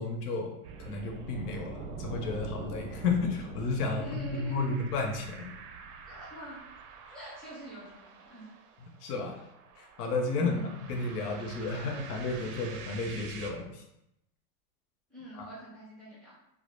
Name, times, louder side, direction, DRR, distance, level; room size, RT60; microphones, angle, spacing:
voice 1, 0.0-5.5 9.0-9.4 9.8-10.5 10.9-13.8, left 3 dB, 80° left, 2 dB, 0.7 m, -32 dB
sound 1, 0.6-13.5, right 5 dB, 80° right, 0.5 m, -45 dB
voice 2, 4.0-4.9 6.1-6.6 7.1-8.5 10.4-10.8 15.1-16.4, right 1 dB, 10° right, -11 dB, 0.4 m, -44 dB
2.2 x 2.0 x 3.0 m, 0.85 s
supercardioid pair, 165°, 46 cm